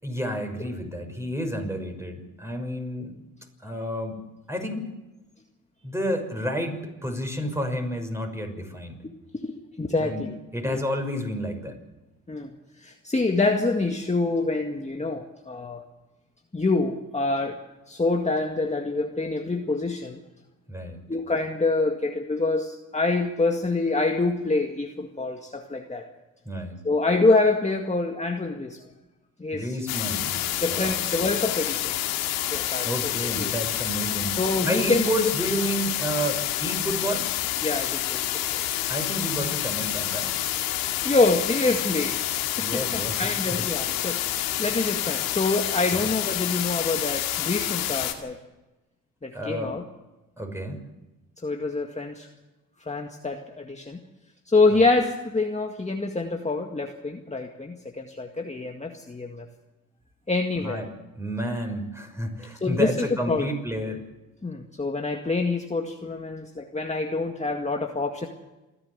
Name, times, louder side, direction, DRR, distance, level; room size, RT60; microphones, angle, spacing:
voice 1, 0.0-3.1 3.6-4.2 4.5-4.9 5.8-9.0 10.0-10.3 10.5-11.8 20.7-21.0 26.5-26.8 29.5-30.4 30.7-31.1 32.8-37.3 38.9-40.3 42.5-43.4 45.9-46.0 49.3-49.8 50.4-50.8 60.6-60.9 61.2-64.0, equal, 5° right, 4 dB, 6.2 m, -30 dB
voice 2, 9.4-10.3 10.7-10.8 12.3-12.5 12.8-15.8 16.5-17.6 17.9-20.2 21.1-26.1 26.8-28.8 29.4-29.8 30.6-31.9 32.5-33.5 34.4-35.0 37.6-38.6 41.0-42.2 42.6-48.4 49.2-49.8 51.4-52.3 52.8-54.0 54.5-59.5 60.3-60.8 62.6-63.5 64.4-68.3, left 3 dB, 20° left, 3 dB, 2.0 m, -26 dB
sound 1, 29.9-48.1, left 13 dB, 85° left, 2.1 m, -28 dB
28.0 x 11.0 x 8.2 m, 1.1 s
hypercardioid pair, 50°, 37 cm